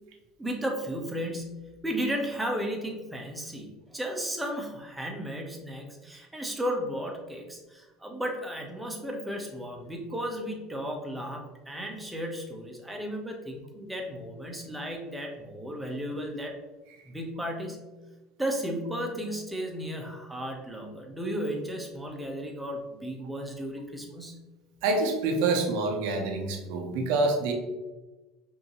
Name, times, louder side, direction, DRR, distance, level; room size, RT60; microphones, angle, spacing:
voice 1, 0.4-16.6 17.0-17.8 18.4-24.4, equal, 5° right, 1 dB, 0.9 m, -34 dB
voice 2, 24.8-27.5, right 3 dB, 75° right, 2 dB, 0.8 m, -26 dB
5.2 x 2.8 x 3.0 m, 1.1 s
supercardioid pair, 100°, 0 cm